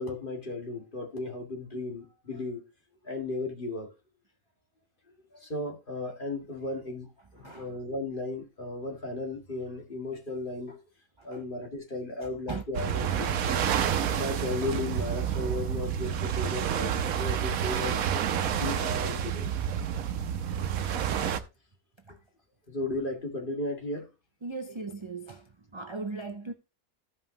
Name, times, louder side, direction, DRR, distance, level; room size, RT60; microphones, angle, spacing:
voice 1, 0.0-2.6 3.0-3.9 5.3-7.1 7.3-10.8 11.2-13.6 14.2-17.9 18.6-19.5 22.7-24.1, left 2 dB, 35° left, 2.2 m, -35 dB
voice 2, 7.4-7.7 11.2-11.4 12.2-12.6 22.0-22.2 24.4-26.5, right 3 dB, 45° right, 0.3 m, -39 dB
sound 1, 12.7-21.4, right 9 dB, 75° right, 1.2 m, -29 dB
15.0 x 5.5 x 2.8 m
omnidirectional pair, 1.5 m